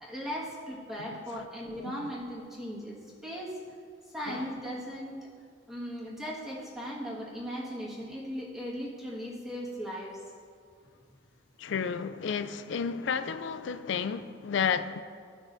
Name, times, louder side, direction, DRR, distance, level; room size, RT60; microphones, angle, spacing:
voice 1, 0.0-3.5 4.1-5.3 5.7-10.1, equal, ahead, -7 dB, 1.7 m, -38 dB
voice 2, 1.1-1.5 1.8-1.9 4.3-4.5 11.6-15.0, left 6 dB, 70° left, 11 dB, 0.4 m, -32 dB
14.5 x 6.0 x 2.7 m, 2.2 s
head